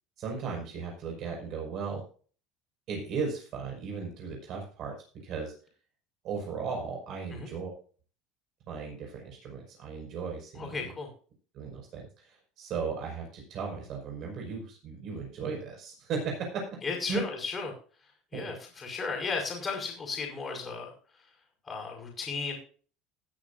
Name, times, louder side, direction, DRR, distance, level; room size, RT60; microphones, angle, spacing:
voice 1, 0.2-2.0 2.9-4.9 5.2-5.5 6.2-7.7 8.7-10.8 11.5-16.6 17.1-17.2 18.3-18.5, right 5 dB, 50° right, 0 dB, 5.7 m, -36 dB
voice 2, 10.5-11.1 16.8-17.7 18.0-21.3 21.6-22.6, left 4 dB, 25° left, -1 dB, 5.2 m, -35 dB
18.5 x 9.3 x 2.7 m, 0.41 s
cardioid pair, 130°, 0 cm